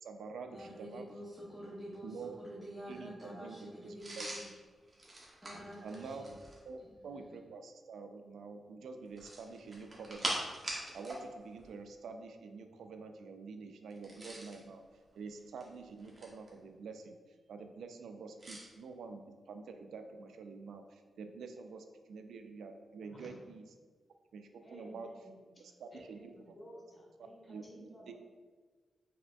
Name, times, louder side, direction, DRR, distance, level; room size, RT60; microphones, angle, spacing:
voice 1, 0.0-1.1 2.0-2.4 2.9-3.7 4.2-4.3 5.8-6.3 6.7-14.8 15.1-17.2 17.5-23.6 24.3-25.1 25.8-26.6 27.2-27.6, right 4 dB, 90° right, 6 dB, 0.3 m, -47 dB
voice 2, 0.5-4.5 5.4-6.4 6.8-7.4, equal, ahead, -7 dB, 0.7 m, -48 dB
sound 1, 4.0-6.7 9.1-11.2 11.5-11.7 13.9-14.6 15.4-16.5 18.4-18.7, right 1 dB, 30° right, 1.0 m, -42 dB
voice 3, 24.6-25.4 25.9-28.1, equal, 30° left, -4 dB, 1.4 m, -54 dB
4.9 x 3.3 x 2.3 m, 1.4 s
cardioid pair, 90°, 0 cm